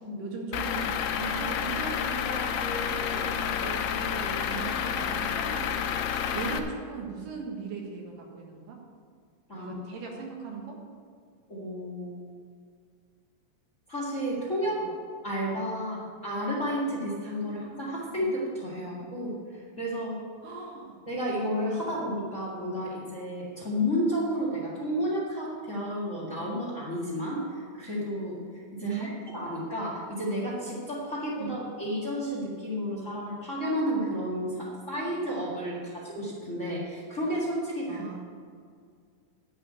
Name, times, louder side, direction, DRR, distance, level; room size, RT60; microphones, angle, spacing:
voice 1, 0.2-6.0 6.3-8.8 9.5-10.8 14.8-15.0 15.9-16.1 17.4-17.6 18.8-18.9 20.4-21.0 21.8-21.9 28.8-29.2 31.4-31.6 35.7-36.0 37.9-38.2, right 5 dB, 80° right, 0 dB, 3.2 m, -38 dB
Truck / Idling, 0.5-6.6, left 8 dB, 90° left, 2.4 m, -30 dB
voice 2, 11.5-12.2 13.9-14.8 15.2-19.3 19.8-20.2 21.1-27.4 27.7-28.4 28.7-38.0, equal, 30° left, -5 dB, 1.7 m, -31 dB
10.5 x 5.6 x 8.4 m, 2.1 s
omnidirectional pair, 3.8 m